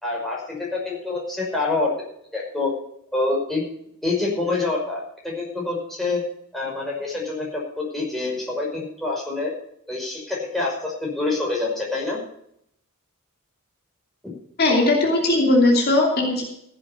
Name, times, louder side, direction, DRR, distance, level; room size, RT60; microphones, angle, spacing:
voice 1, 0.0-1.9 2.3-2.7 3.1-3.6 4.0-6.2 6.5-9.5 9.9-12.2, left 3 dB, ahead, -4 dB, 5.6 m, -26 dB
voice 2, 14.6-16.4, left 2 dB, 45° left, 0 dB, 2.9 m, -18 dB
15.5 x 8.0 x 7.0 m, 0.72 s
head